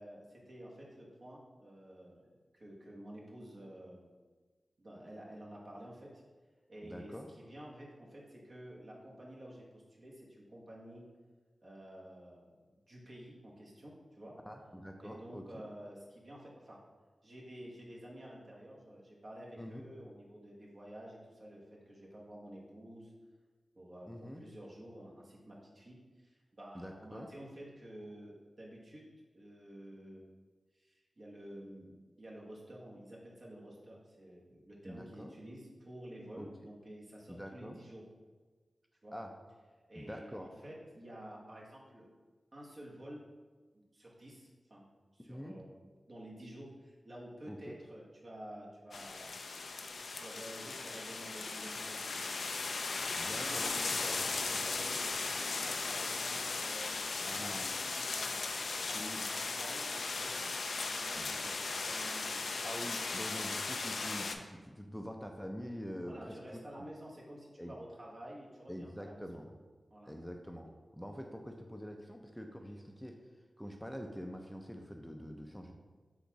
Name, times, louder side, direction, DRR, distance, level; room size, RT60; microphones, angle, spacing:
voice 1, 0.0-4.1 4.8-6.2 6.7-11.1 11.6-12.5 12.9-14.3 15.0-16.8 17.2-23.1 23.7-29.0 29.3-30.2 30.7-38.0 39.0-39.1 39.9-42.1 42.5-43.2 43.7-44.9 45.1-49.3 50.1-52.4 52.9-60.5 60.8-61.6 61.8-62.5 66.1-69.4 69.9-70.1, right 1 dB, 55° right, -4 dB, 1.1 m, -51 dB
voice 2, 6.8-7.3 14.5-15.7 19.6-19.8 24.1-24.4 26.7-27.3 34.8-35.3 36.4-36.5 37.3-37.8 39.1-39.4 39.9-40.5 45.3-45.6 47.5-47.8 53.2-53.7 54.2-54.3 56.9-57.7 58.9-59.2 61.2-61.3 62.6-66.4 66.7-66.9 67.6-67.7 68.7-69.5 70.1-73.2 73.6-75.7, equal, ahead, 3 dB, 0.4 m, -45 dB
sound 1, 48.9-64.4, left 3 dB, 80° left, 0.3 m, -37 dB
4.0 x 2.9 x 4.6 m, 1.4 s
cardioid pair, 45°, 0 cm